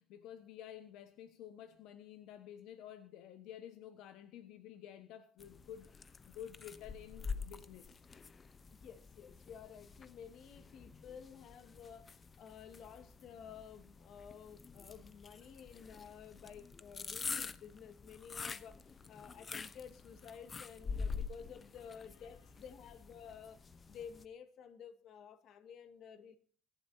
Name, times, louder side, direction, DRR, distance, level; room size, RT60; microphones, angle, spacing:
voice 1, 0.0-8.0 14.8-14.9, left 10 dB, 75° left, 1.2 m, -51 dB
sound 1, 5.4-24.2, left 5 dB, 25° left, 0.7 m, -47 dB
voice 2, 8.8-18.8 19.1-26.4, left 7 dB, 55° left, 1.8 m, -53 dB
25.0 x 11.5 x 2.7 m
cardioid pair, 140°, 0 cm